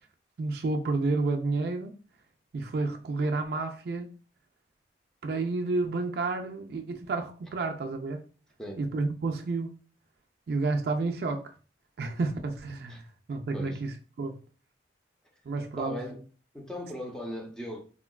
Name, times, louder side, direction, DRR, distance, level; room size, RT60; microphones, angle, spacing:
voice 1, 0.4-1.9 2.5-4.1 5.2-8.2 8.8-9.7 10.5-11.5 12.0-13.9 14.2-14.4 15.5-16.0, right 3 dB, 55° right, 0.4 m, -30 dB
voice 2, 15.8-16.2 16.5-17.8, equal, 5° left, 0.5 m, -38 dB
3.7 x 2.3 x 2.2 m
head